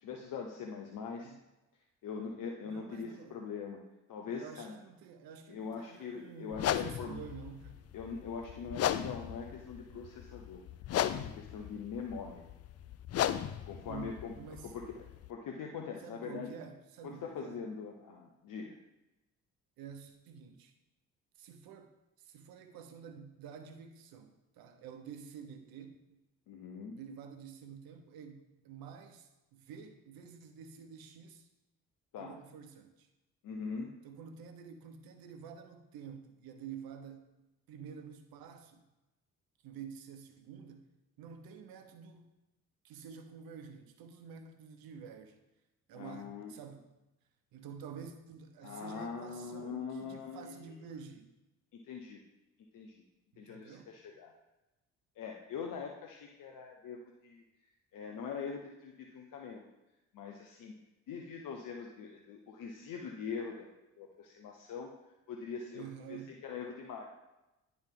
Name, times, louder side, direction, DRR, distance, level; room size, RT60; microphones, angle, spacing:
voice 1, 0.0-1.3 2.0-3.8 4.1-4.8 5.5-7.2 7.9-12.5 13.7-14.3 14.6-15.0 15.3-16.5 17.0-18.8 26.5-27.0 32.1-32.3 33.4-34.0 45.9-46.5 48.6-50.6 51.7-52.2 52.7-53.0 53.4-54.3 55.2-57.4 57.9-59.6 60.1-60.7 61.1-63.7 64.0-64.9 65.3-67.1, left 5 dB, 60° left, 1 dB, 1.0 m, -42 dB
voice 2, 2.6-3.4 4.3-7.9 13.8-14.7 16.0-17.6 19.8-20.7 21.4-26.2 26.9-31.5 32.2-33.1 34.0-37.3 37.7-38.9 39.6-40.9 41.2-42.3 42.8-45.4 45.9-46.9 47.5-51.3 53.3-53.9 65.7-66.4, right 7 dB, 70° right, 8 dB, 1.0 m, -49 dB
sound 1, 6.5-15.3, left 11 dB, 45° left, 0.4 m, -36 dB
10.5 x 4.0 x 3.8 m, 0.99 s
hypercardioid pair, 55°, 37 cm